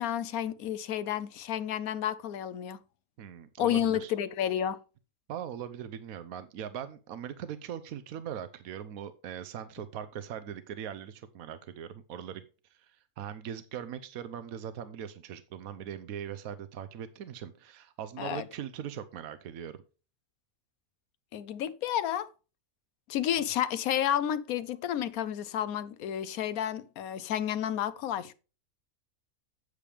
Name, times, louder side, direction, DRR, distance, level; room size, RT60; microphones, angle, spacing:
voice 1, 0.0-2.8 3.6-4.8 18.2-18.4 21.3-22.3 23.1-28.3, left 10 dB, 90° left, 1.1 m, -31 dB
voice 2, 3.2-4.1 5.3-12.4 12.8-19.8, right 9 dB, 85° right, 1.2 m, -40 dB
8.4 x 8.3 x 3.4 m
omnidirectional pair, 1.5 m